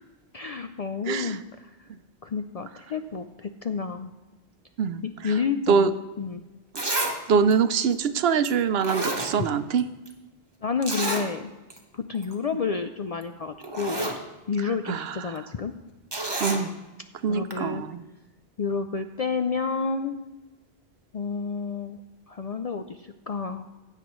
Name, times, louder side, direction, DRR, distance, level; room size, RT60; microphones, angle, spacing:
voice 1, 0.3-1.9 2.2-4.1 5.0-6.4 10.6-11.5 11.9-14.1 14.5-15.7 17.3-17.8 18.6-20.2 21.1-22.0 22.3-23.7, left 5 dB, 55° left, 7 dB, 0.4 m, -30 dB
voice 2, 1.1-1.4 4.8-5.3 5.7-5.9 6.7-6.8 7.3-9.8 14.9-15.4 16.4-16.7 17.2-18.0, right 6 dB, 70° right, 12 dB, 0.8 m, -24 dB
Zipper (clothing), 6.2-6.3 6.8-7.2 7.5-7.6 8.4-8.5 8.8-9.8 10.1-10.2 10.8-11.3 11.7-11.8 12.1-12.3 13.2-13.3 13.6-14.2 16.1-16.6 17.5-17.6, right 2 dB, 25° right, 1.1 m, -29 dB
15.5 x 8.6 x 3.1 m, 1.1 s
omnidirectional pair, 1.1 m